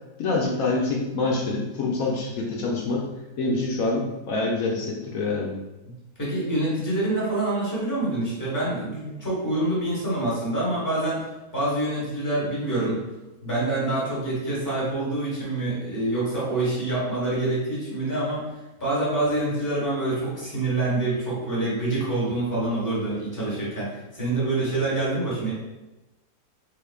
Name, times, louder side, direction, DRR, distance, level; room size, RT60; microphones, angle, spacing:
voice 1, 0.2-3.0 3.4-5.5, left 3 dB, 65° left, -2 dB, 0.9 m, -26 dB
voice 2, 6.2-11.2 11.5-13.0 13.4-18.5 18.8-25.5, right 2 dB, 15° left, -8 dB, 1.1 m, -26 dB
3.5 x 3.3 x 2.3 m, 1.0 s
omnidirectional pair, 1.8 m